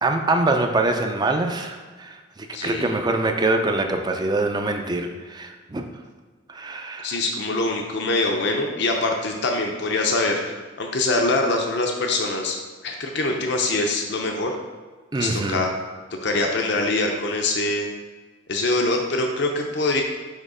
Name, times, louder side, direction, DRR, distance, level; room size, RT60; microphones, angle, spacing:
voice 1, 0.0-5.8 6.5-7.2 15.1-15.6, right 2 dB, 20° right, 5 dB, 0.4 m, -24 dB
voice 2, 2.5-2.8 7.0-14.5 15.1-15.7 16.2-17.9 18.5-20.0, left 2 dB, 60° left, 2 dB, 0.6 m, -24 dB
6.5 x 3.0 x 4.9 m, 1.4 s
head